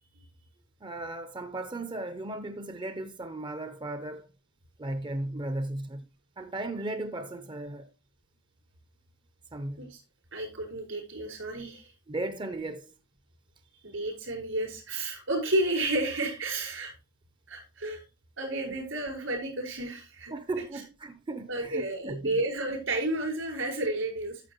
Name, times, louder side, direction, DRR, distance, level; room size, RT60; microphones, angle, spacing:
voice 1, 0.8-4.3 4.8-6.0 6.4-7.9 9.5-9.9 12.1-12.9 20.3-22.4, right 2 dB, 25° right, 0.5 m, -36 dB
voice 2, 10.3-11.9 13.8-16.9 17.5-18.0 18.4-20.3 21.5-24.4, right 2 dB, 80° right, 5.0 m, -31 dB
12.0 x 6.9 x 2.9 m
head